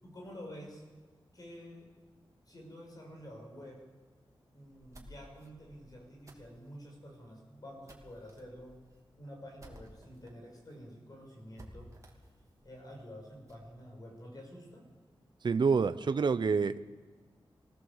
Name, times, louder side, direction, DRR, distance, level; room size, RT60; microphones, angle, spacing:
voice 1, 0.0-0.8 1.3-1.9 2.5-3.8 4.5-8.8 9.1-12.0 12.6-14.9, equal, 45° left, 0 dB, 6.6 m, -49 dB
sound 1, 4.6-10.3 10.7-10.8 11.0-11.1 11.6-13.7, right 1 dB, 35° right, 2.9 m, -56 dB
voice 2, 15.4-17.0, right 5 dB, 55° right, 12 dB, 0.6 m, -28 dB
25.0 x 18.0 x 7.2 m, 1.3 s
wide cardioid pair, 135°, 9 cm